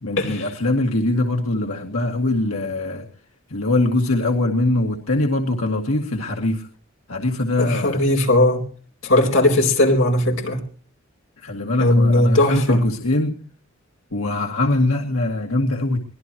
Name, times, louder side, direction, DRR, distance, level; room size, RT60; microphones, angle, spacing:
voice 1, 0.0-3.1 3.5-6.7 7.1-8.1 9.2-9.3 11.4-13.4 14.1-16.0, left 2 dB, 90° left, 2 dB, 2.1 m, -22 dB
voice 2, 7.6-8.6 9.0-10.6 11.8-12.8, left 1 dB, 65° left, 1 dB, 4.3 m, -18 dB
24.0 x 18.5 x 3.1 m, 0.43 s
head